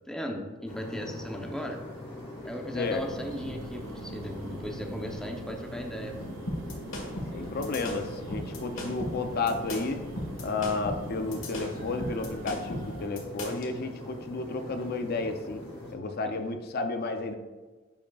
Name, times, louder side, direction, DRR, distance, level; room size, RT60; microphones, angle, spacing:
voice 1, 0.1-1.8 2.4-6.3 16.3-16.4, equal, 5° left, 2 dB, 0.6 m, -37 dB
sound 1, 0.7-15.9, left 1 dB, 30° left, 1.5 m, -42 dB
old computer, 2.8-13.1, right 3 dB, 70° right, 0.6 m, -44 dB
sound 2, 6.5-13.7, left 1 dB, 75° left, 1.4 m, -37 dB
voice 2, 7.3-10.0 10.4-15.6 15.9-17.4, left 3 dB, 50° left, 7 dB, 0.5 m, -32 dB
10.0 x 4.8 x 2.3 m, 1.3 s
head